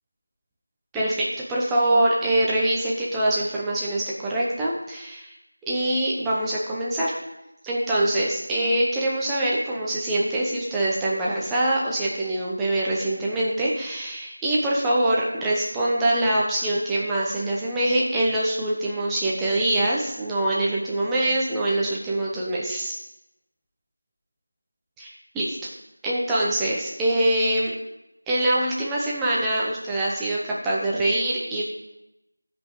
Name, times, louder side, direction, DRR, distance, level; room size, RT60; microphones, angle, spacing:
voice 1, 0.9-5.3 5.7-7.1 7.6-22.9 25.0-25.1 25.3-25.6 26.0-27.7 28.3-31.6, right 1 dB, 5° right, -6 dB, 0.7 m, -24 dB
14.5 x 5.2 x 3.8 m, 0.92 s
figure-of-eight pair, 175°, 0 cm